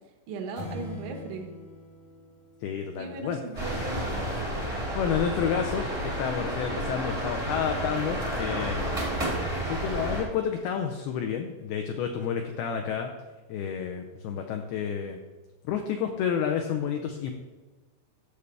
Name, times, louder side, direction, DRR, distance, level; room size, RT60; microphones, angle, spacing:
voice 1, 0.3-1.5 3.0-4.2 9.2-9.5, right 3 dB, 85° right, 3 dB, 3.6 m, -38 dB
sound 1, 0.6-3.2, left 2 dB, 65° left, 3.0 m, -42 dB
voice 2, 2.6-3.4 4.5-8.9 9.6-13.1 13.5-15.2 15.6-17.3, left 8 dB, 85° left, 4 dB, 2.2 m, -30 dB
sound 2, 3.5-10.2, right 1 dB, 30° right, 0.6 m, -31 dB
11.5 x 6.8 x 3.4 m, 1.3 s
omnidirectional pair, 5.2 m